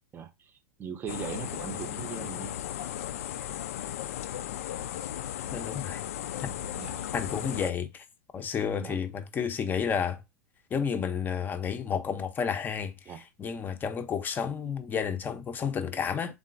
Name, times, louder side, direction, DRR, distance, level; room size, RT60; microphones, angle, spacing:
voice 1, 0.1-0.5 0.8-2.6 6.8-7.0 8.8-9.0 13.1-13.2, right 7 dB, 20° right, 0.7 m, -39 dB
sound 1, 1.1-7.7, left 11 dB, 55° left, 0.4 m, -36 dB
voice 2, 5.5-6.0 6.4-6.5 7.1-8.0 8.3-10.2 10.7-16.4, left 7 dB, 20° left, 0.6 m, -31 dB
3.7 x 3.7 x 2.5 m
figure-of-eight pair, 95°, 9 cm